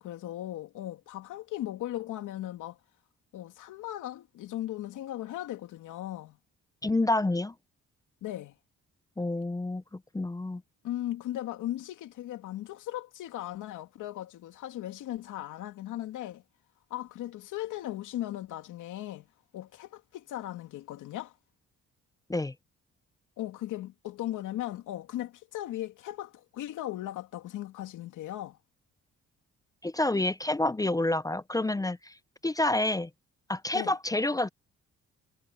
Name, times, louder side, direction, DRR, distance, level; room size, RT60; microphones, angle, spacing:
voice 1, 0.0-2.8 3.3-6.4 8.2-8.5 10.8-16.4 16.9-19.3 19.5-21.3 23.4-28.6 33.7-33.9, left 14 dB, 85° left, 2.6 m, -37 dB
voice 2, 6.8-7.5 9.2-10.6 22.3-22.5 29.8-32.1 32.4-33.1 33.5-34.5, left 2 dB, 10° left, 0.6 m, -28 dB
cardioid pair, 90°, 30 cm